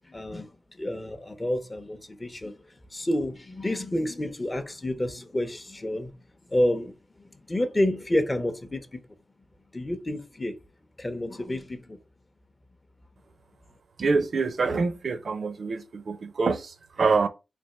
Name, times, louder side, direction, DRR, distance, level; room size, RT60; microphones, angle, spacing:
voice 1, 0.1-0.5 0.8-2.5 2.9-6.1 6.5-7.0 7.5-9.0 9.7-10.6 11.0-12.0, left 1 dB, 20° left, 0.6 m, -29 dB
voice 2, 14.0-17.3, right 4 dB, 55° right, 0.5 m, -26 dB
3.4 x 2.8 x 4.1 m
cardioid pair, 80°, 0 cm